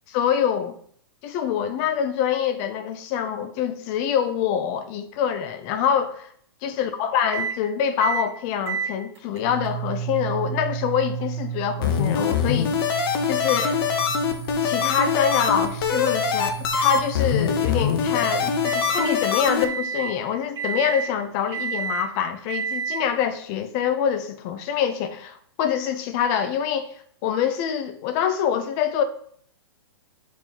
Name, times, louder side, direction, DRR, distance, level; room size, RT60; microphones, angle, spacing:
voice 1, 0.1-0.8 1.2-6.3 6.6-12.7 13.3-13.8 14.6-26.9 27.2-29.0, left 8 dB, 35° left, 0.7 m, -25 dB
sound 1, 7.3-7.6 8.0-8.3 8.7-19.2 19.6-20.2 20.6-21.1 21.5-22.1 22.5-23.0, right 7 dB, 90° right, 1.8 m, -32 dB
sound 2, 11.8-19.6, left 6 dB, 60° left, 0.9 m, -24 dB
6.9 x 4.6 x 3.0 m
hypercardioid pair, 145°, 14 cm